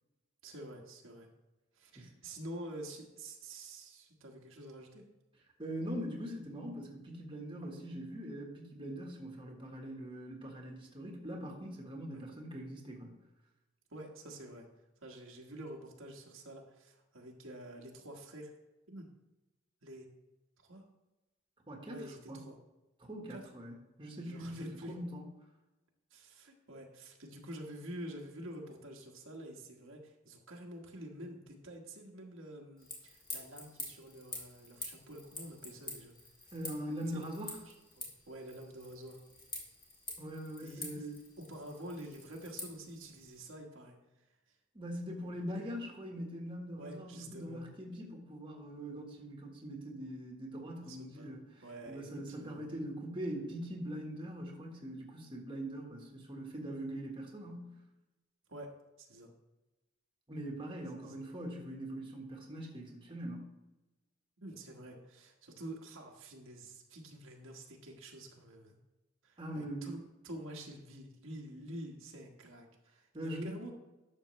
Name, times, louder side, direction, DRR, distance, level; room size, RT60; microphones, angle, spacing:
voice 1, 0.4-1.3 1.7-5.0 12.1-12.2 13.9-14.7 15.0-18.5 18.9-19.1 19.8-20.1 20.6-20.8 21.9-22.6 23.3-23.5 24.2-25.0 26.1-36.1 37.1-37.2 37.6-39.2 40.6-44.3 45.4-45.7 46.8-47.6 50.8-52.7 58.5-59.3 61.0-61.3 64.4-68.8 69.2-73.7, right 1 dB, 80° right, 0 dB, 1.4 m, -48 dB
voice 2, 5.6-13.2 21.7-22.0 22.3-22.4 23.0-23.7 24.0-24.6 24.9-25.2 36.5-37.5 40.2-41.1 44.7-57.7 60.3-63.5 69.4-69.9 73.1-73.6, equal, 25° right, -1 dB, 1.4 m, -42 dB
sound 1, 32.8-43.5, left 2 dB, 25° left, 1.8 m, -48 dB
11.5 x 6.6 x 3.2 m, 1.0 s
head